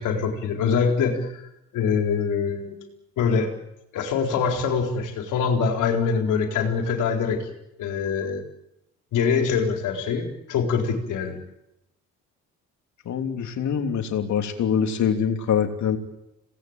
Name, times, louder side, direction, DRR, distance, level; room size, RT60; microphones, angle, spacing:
voice 1, 0.0-1.4 1.7-2.8 3.2-3.5 3.9-7.4 7.8-8.4 9.1-11.4, left 6 dB, 85° left, 3 dB, 4.2 m, -24 dB
voice 2, 13.0-16.0, left 7 dB, 70° left, 5 dB, 3.1 m, -24 dB
27.5 x 18.5 x 8.9 m, 0.89 s
cardioid pair, 90°, 30 cm